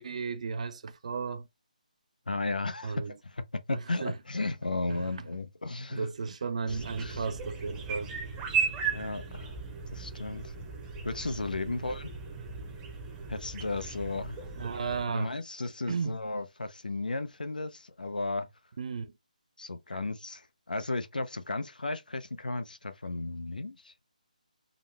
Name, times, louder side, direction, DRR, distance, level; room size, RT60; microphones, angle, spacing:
voice 1, 0.0-1.5 2.8-3.1 3.7-4.2 4.9-5.1 5.9-8.1 11.8-12.0 14.6-15.3 15.9-16.2 18.8-19.1, right 5 dB, 50° right, 0.5 m, -34 dB
voice 2, 2.3-3.4 3.7-6.1 6.7-7.2 8.9-9.5 9.9-10.5 11.0-12.1 13.3-14.4 15.1-18.5 19.6-23.9, left 2 dB, 85° left, 0.7 m, -34 dB
sound 1, 6.7-15.1, right 5 dB, 15° right, 0.7 m, -36 dB
3.8 x 2.1 x 3.3 m
figure-of-eight pair, 155°, 4 cm